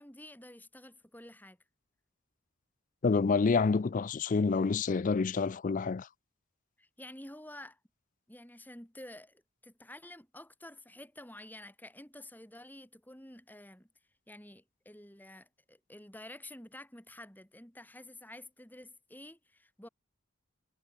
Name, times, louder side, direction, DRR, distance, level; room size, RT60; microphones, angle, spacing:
voice 1, 0.0-1.6 6.8-7.8 8.3-13.9 14.3-19.9, left 1 dB, 10° left, 5.5 m, -50 dB
voice 2, 3.0-6.1, left 4 dB, 40° left, 0.4 m, -28 dB
head